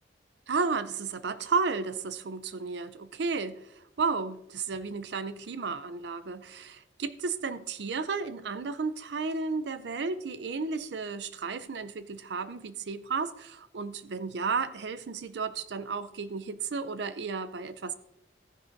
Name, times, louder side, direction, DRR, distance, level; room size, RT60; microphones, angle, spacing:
voice 1, 0.5-17.9, right 4 dB, 70° right, 0.5 m, -33 dB
14.5 x 10.5 x 2.6 m
head